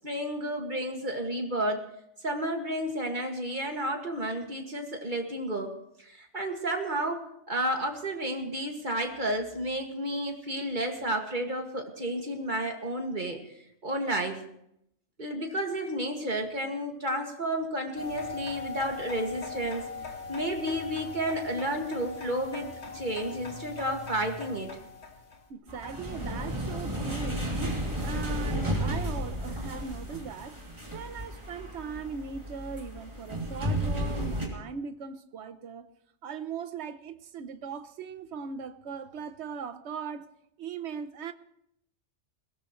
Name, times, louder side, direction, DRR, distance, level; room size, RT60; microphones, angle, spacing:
voice 1, 0.0-1.8 2.2-5.7 6.0-13.4 13.8-14.4 15.2-19.9 20.3-22.7 22.9-24.8, right 1 dB, 45° right, 2.3 m, -31 dB
sound 1, 18.0-25.4, left 4 dB, 75° left, 2.3 m, -40 dB
voice 2, 25.5-30.6 30.9-35.9 36.2-40.3 40.6-41.3, right 6 dB, 75° right, 1.1 m, -39 dB
sound 2, 25.7-34.5, equal, 25° right, 2.9 m, -33 dB
21.5 x 17.5 x 3.2 m
omnidirectional pair, 1.2 m